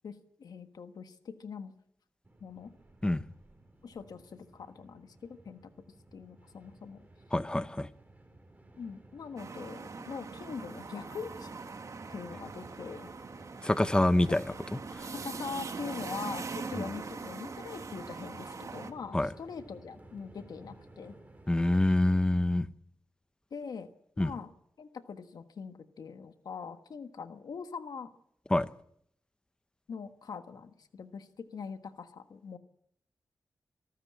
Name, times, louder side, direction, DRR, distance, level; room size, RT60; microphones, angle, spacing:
voice 1, 0.0-1.7 2.4-2.7 3.8-5.7 6.1-7.0 8.8-11.5 12.1-13.1 14.3-14.4 15.1-21.1 23.5-23.9 24.2-24.5 24.8-28.1 29.9-32.6, left 5 dB, 85° left, 1.5 m, -42 dB
Train, 2.2-22.2, right 1 dB, 25° right, 4.3 m, -54 dB
voice 2, 7.3-7.9 13.6-14.4 15.0-15.1 19.1-19.3 21.5-22.7 24.2-24.3 28.5-28.7, left 1 dB, 15° left, 0.8 m, -26 dB
sound 1, 9.4-18.9, right 4 dB, 55° right, 1.7 m, -42 dB
25.0 x 13.5 x 8.7 m
wide cardioid pair, 100°, 6 cm